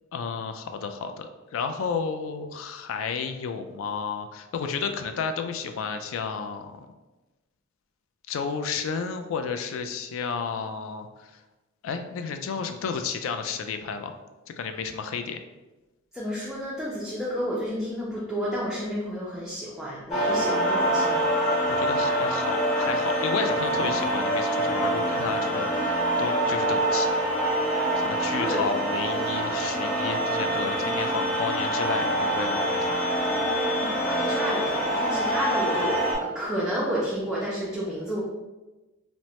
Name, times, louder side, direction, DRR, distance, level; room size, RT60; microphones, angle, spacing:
voice 1, 0.1-6.9 8.3-11.4 11.8-14.1 14.6-15.4 21.7-27.2 28.0-33.0, left 5 dB, 70° left, 8 dB, 0.3 m, -32 dB
voice 2, 16.1-21.3 28.4-28.6 33.0-38.2, equal, ahead, -8 dB, 0.4 m, -31 dB
sound 1, 20.1-36.2, right 1 dB, 35° left, 1.0 m, -25 dB
2.8 x 2.1 x 3.0 m, 1.1 s
head